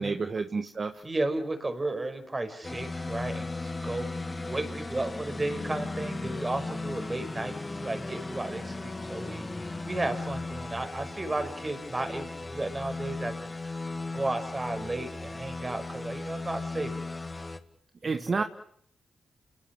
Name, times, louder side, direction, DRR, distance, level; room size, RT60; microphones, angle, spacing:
voice 1, 0.0-1.0 18.0-18.4, right 4 dB, 50° right, 7 dB, 1.6 m, -30 dB
voice 2, 1.0-4.1 4.5-13.8 14.1-16.9 18.0-18.5, right 2 dB, 25° right, 8 dB, 5.7 m, -34 dB
sound 1, 2.6-17.6, left 3 dB, 25° left, 2.4 m, -36 dB
28.5 x 19.0 x 7.4 m, 0.66 s
cardioid pair, 65°, 0 cm